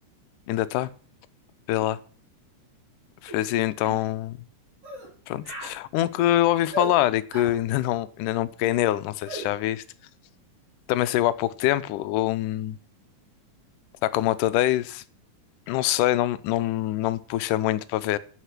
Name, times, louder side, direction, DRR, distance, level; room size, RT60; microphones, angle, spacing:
voice 1, 0.5-0.9 1.7-2.0 3.2-4.4 5.3-9.8 10.9-12.8 14.0-15.0 15.7-18.2, left 14 dB, 90° left, 2.2 m, -24 dB
sound 1, 3.3-3.4 3.8-4.0 4.8-5.1 5.4-5.8 6.7-6.9 7.3-7.6 9.3-9.5, right 1 dB, 70° right, 5.3 m, -35 dB
8.5 x 8.2 x 5.9 m
omnidirectional pair, 3.6 m